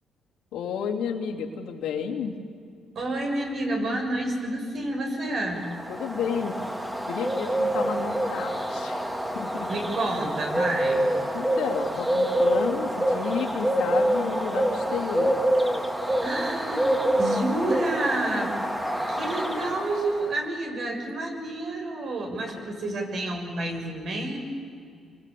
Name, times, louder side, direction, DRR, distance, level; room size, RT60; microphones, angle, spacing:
voice 1, 0.5-2.4 5.9-6.6 7.1-9.0 9.3-9.7 11.3-15.5, left 7 dB, 90° left, -1 dB, 3.1 m, -31 dB
voice 2, 2.9-5.6 9.7-11.1 16.2-18.5 19.1-24.4, right 1 dB, 60° right, 2 dB, 6.7 m, -29 dB
Bird, 5.6-20.3, right 1 dB, 10° right, 2.5 m, -26 dB
28.5 x 24.0 x 8.6 m, 2.2 s
cardioid pair, 90°, 0 cm